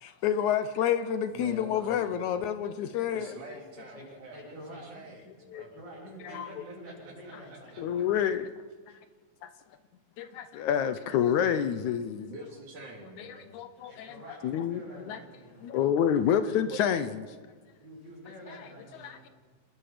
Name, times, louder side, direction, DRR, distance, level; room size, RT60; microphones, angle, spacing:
voice 1, 0.0-3.4 5.5-5.6 6.2-6.5 7.8-8.5 9.4-9.5 10.2-12.3 13.2-14.2 14.4-15.2 15.6-17.2 19.0-19.3, left 9 dB, 75° left, 11 dB, 1.8 m, -28 dB
voice 2, 1.3-2.2 3.1-5.8 6.1-7.8 8.9-9.0 12.3-13.5 16.7-17.1, right 2 dB, 55° right, -1 dB, 5.2 m, -46 dB
voice 3, 3.9-5.1 5.7-7.9 13.9-15.7 17.8-19.3, equal, 40° right, -6 dB, 7.4 m, -48 dB
28.5 x 20.0 x 5.0 m, 1.5 s
omnidirectional pair, 4.1 m